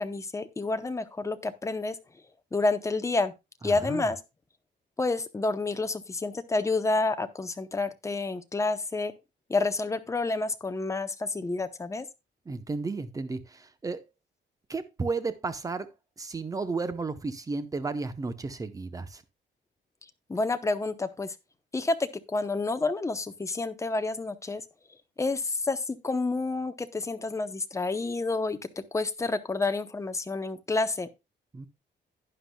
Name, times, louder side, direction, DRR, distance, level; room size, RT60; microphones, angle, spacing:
voice 1, 0.0-2.0 2.5-3.3 3.6-4.2 5.0-9.1 9.5-12.0 20.3-21.3 21.7-24.6 25.2-28.6 28.9-31.1, left 3 dB, 15° left, 0.7 m, -29 dB
voice 2, 3.6-4.1 12.5-14.0 14.7-15.9 16.2-19.2 31.5-31.7, right 3 dB, 15° right, 0.8 m, -33 dB
11.5 x 9.9 x 2.2 m
wide cardioid pair, 180°, 20 cm